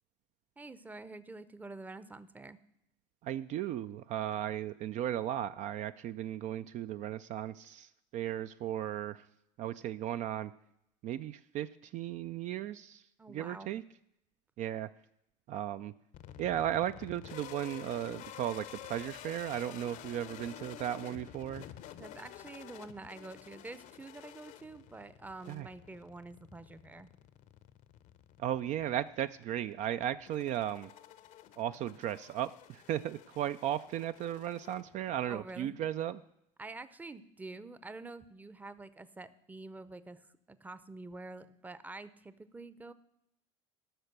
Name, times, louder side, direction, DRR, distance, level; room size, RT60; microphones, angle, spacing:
voice 1, 0.6-2.6 13.2-13.7 22.0-27.1 35.3-35.7 36.6-42.9, right 3 dB, 10° right, 14 dB, 0.6 m, -47 dB
voice 2, 3.2-9.2 9.6-10.5 11.0-11.7 11.9-13.0 13.3-13.8 14.6-14.9 15.5-15.9 16.4-21.7 25.5-25.7 28.4-30.9 31.6-36.2, right 11 dB, 50° right, 12 dB, 0.4 m, -36 dB
sound 1, 16.1-35.3, left 11 dB, 55° left, 0.7 m, -51 dB
13.5 x 5.8 x 6.6 m, 0.81 s
supercardioid pair, 90°, 16 cm